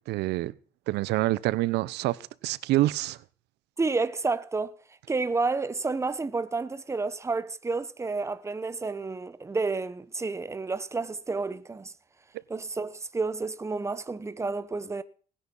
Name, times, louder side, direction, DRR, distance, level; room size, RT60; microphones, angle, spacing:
voice 1, 0.1-0.5 0.9-3.2, right 17 dB, 85° right, 0.8 m, -27 dB
voice 2, 3.8-11.9 12.5-15.0, right 3 dB, 15° right, 1.1 m, -30 dB
18.5 x 10.5 x 5.5 m
cardioid pair, 110°, 17 cm